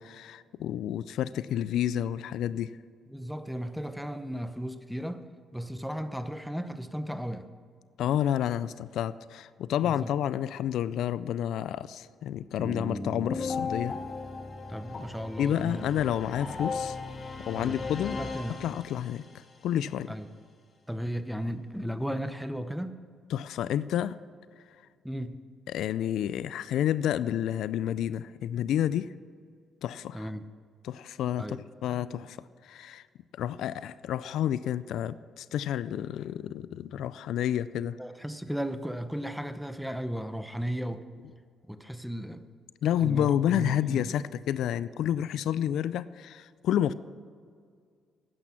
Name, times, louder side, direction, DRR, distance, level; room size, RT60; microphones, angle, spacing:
voice 1, 0.0-2.7 8.0-14.0 15.4-17.0 17.5-18.2 18.5-19.2 19.6-20.1 23.3-24.2 25.7-29.1 29.8-30.3 30.8-32.4 32.6-33.0 33.3-38.0 42.8-46.9, left 10 dB, 80° left, 16 dB, 0.3 m, -30 dB
voice 2, 3.1-5.2 5.5-7.5 9.8-10.1 14.7-15.9 17.5-17.8 18.1-18.6 20.1-20.3 20.9-23.0 25.0-25.4 30.1-30.4 31.4-31.6 38.0-41.0 41.7-42.4 43.0-44.1, equal, ahead, 10 dB, 0.8 m, -35 dB
sound 1, 12.6-19.4, left 4 dB, 45° left, 1.5 m, -36 dB
12.0 x 9.3 x 5.8 m, 2.1 s
cardioid pair, 90°, 0 cm